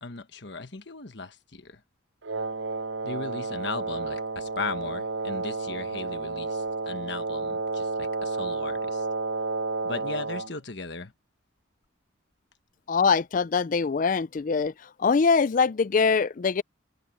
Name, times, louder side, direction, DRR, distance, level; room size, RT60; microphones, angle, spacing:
voice 1, 0.0-1.8 3.0-9.1 9.8-11.1, left 4 dB, 60° left, 1.4 m, -37 dB
Wind instrument woodwind instrument, 2.2-10.5, right 3 dB, 70° right, 0.7 m, -31 dB
voice 2, 12.9-14.7 15.0-16.6, left 5 dB, 40° left, 0.4 m, -23 dB
head